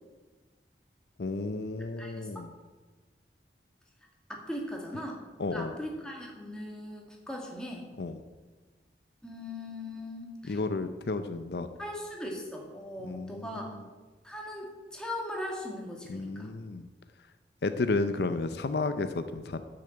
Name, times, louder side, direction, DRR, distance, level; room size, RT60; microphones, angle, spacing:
voice 1, 1.2-2.5 5.4-5.8 8.0-8.2 10.5-11.7 13.0-13.8 16.1-16.9 17.6-19.6, left 3 dB, 65° left, 10 dB, 0.6 m, -32 dB
voice 2, 2.0-2.3 4.3-5.2 5.5-7.9 9.2-10.6 11.8-13.7 14.2-16.5, left 1 dB, 5° left, -1 dB, 2.1 m, -39 dB
10.0 x 6.7 x 7.8 m, 1.4 s
head